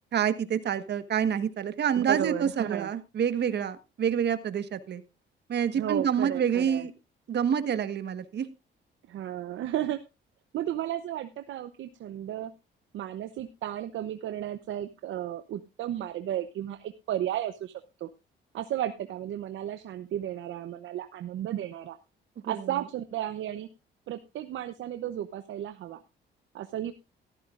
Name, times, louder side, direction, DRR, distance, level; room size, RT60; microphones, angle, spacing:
voice 1, 0.1-5.0 5.5-6.9 7.3-8.5 22.4-22.8, right 8 dB, 60° right, 12 dB, 1.4 m, -27 dB
voice 2, 1.9-2.9 5.7-6.9 9.1-10.0 10.5-12.5 12.9-18.1 18.5-22.0 22.4-23.7 24.1-26.0 26.5-26.9, right 12 dB, 75° right, 9 dB, 0.8 m, -33 dB
14.5 x 13.5 x 2.5 m, 0.26 s
cardioid pair, 90°, 20 cm